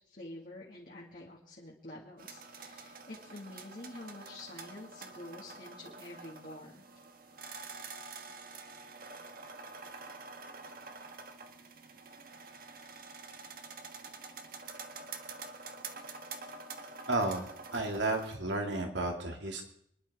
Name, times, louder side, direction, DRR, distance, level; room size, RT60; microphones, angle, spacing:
voice 1, 0.1-6.8, left 1 dB, 50° left, -3 dB, 2.2 m, -48 dB
sound 1, 2.2-18.4, right 4 dB, 50° right, 1.3 m, -47 dB
voice 2, 17.1-19.6, right 2 dB, 80° right, 3 dB, 2.5 m, -33 dB
25.0 x 11.5 x 3.7 m, 0.68 s
head